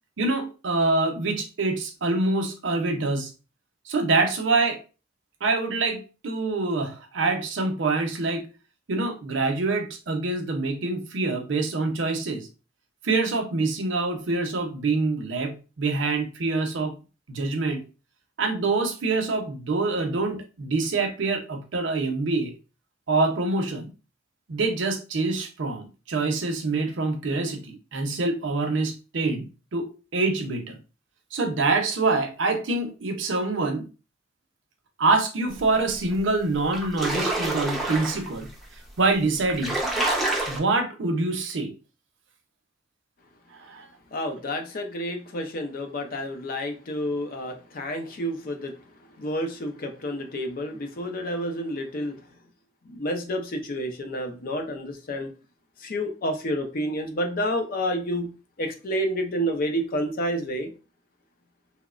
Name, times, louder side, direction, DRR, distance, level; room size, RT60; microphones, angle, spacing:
voice 1, 0.2-3.3 3.9-4.8 5.4-8.5 8.9-12.5 13.0-16.9 17.3-17.8 18.4-22.5 23.1-23.9 24.5-29.5 29.7-30.8 31.3-33.9 35.0-38.5 39.0-39.8 40.5-41.7 43.5-43.9, right 3 dB, 75° right, 5 dB, 0.6 m, -25 dB
sound 1, 36.1-36.2 36.6-38.3 39.0-39.1 39.4-40.6, right 2 dB, ahead, 0.5 m, -27 dB
voice 2, 44.1-48.7 49.2-52.1 52.9-55.3 55.8-58.3 58.6-60.7, equal, 50° left, 5 dB, 0.5 m, -29 dB
2.8 x 2.0 x 2.4 m, 0.33 s
head